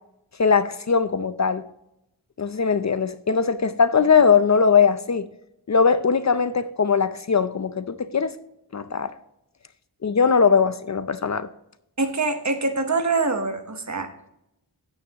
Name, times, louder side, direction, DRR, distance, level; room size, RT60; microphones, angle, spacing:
voice 1, 0.4-1.6 2.4-5.3 5.7-8.3 8.7-9.1 10.0-11.5, left 5 dB, 45° left, 0.5 m, -20 dB
voice 2, 12.0-14.1, right 3 dB, 45° right, 1.2 m, -24 dB
9.4 x 9.3 x 2.9 m
wide cardioid pair, 85°, 39 cm